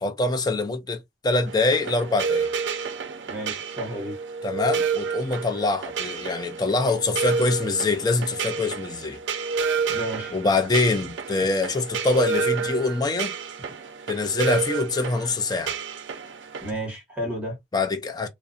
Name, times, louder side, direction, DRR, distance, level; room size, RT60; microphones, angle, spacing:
voice 1, 0.0-2.5 4.4-9.2 10.3-13.3 14.1-15.7 17.7-18.3, left 3 dB, 20° left, 0.4 m, -24 dB
sound 1, 1.5-16.7, right 5 dB, 75° right, 0.4 m, -30 dB
voice 2, 3.3-4.1 9.9-10.3 16.6-17.6, equal, 10° right, 1.1 m, -32 dB
2.4 x 2.1 x 2.5 m
head